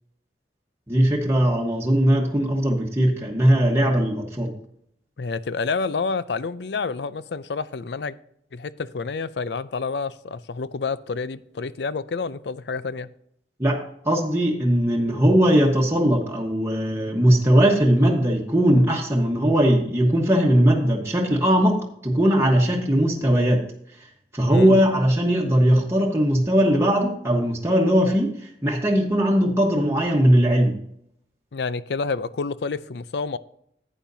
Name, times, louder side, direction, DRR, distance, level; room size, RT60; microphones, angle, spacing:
voice 1, 0.9-4.5 13.6-13.8 14.0-23.6 24.3-30.8, equal, 15° right, 1.2 m, -19 dB
voice 2, 5.2-8.2 8.5-13.1 24.5-24.7 31.5-33.4, left 4 dB, 75° left, 0.5 m, -29 dB
11.5 x 9.0 x 2.7 m
head